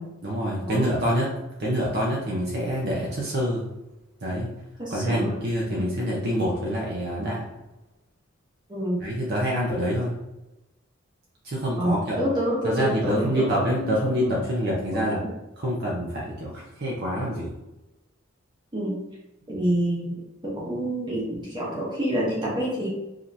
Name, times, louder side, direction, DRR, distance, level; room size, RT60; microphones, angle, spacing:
voice 1, 0.2-1.3 1.6-3.6 4.2-4.5 4.9-7.4 9.0-10.1 11.4-12.2 12.6-15.2 15.6-17.6, equal, 50° right, -4 dB, 0.8 m, -26 dB
voice 2, 4.8-5.3 5.7-5.8 8.7-9.0 11.8-14.4 14.9-15.1 18.7-19.0 19.5-20.1 20.4-22.9, right 1 dB, 20° right, -6 dB, 1.0 m, -27 dB
5.1 x 2.9 x 2.7 m, 0.98 s
head